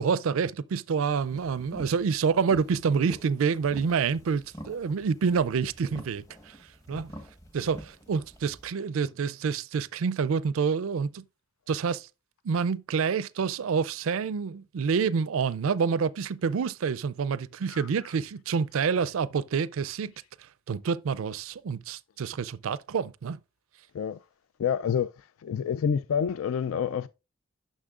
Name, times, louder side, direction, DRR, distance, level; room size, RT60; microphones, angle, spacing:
voice 1, 0.0-6.5 6.9-7.1 7.5-11.2 11.7-12.1 12.4-20.1 20.7-23.4, right 6 dB, 70° right, 0.4 m, -27 dB
sound 1, 1.1-8.7, right 1 dB, 15° left, 1.3 m, -47 dB
voice 2, 17.7-18.1 23.9-24.2 24.6-25.1 25.4-27.1, left 7 dB, 75° left, 0.3 m, -28 dB
9.9 x 6.4 x 2.4 m
head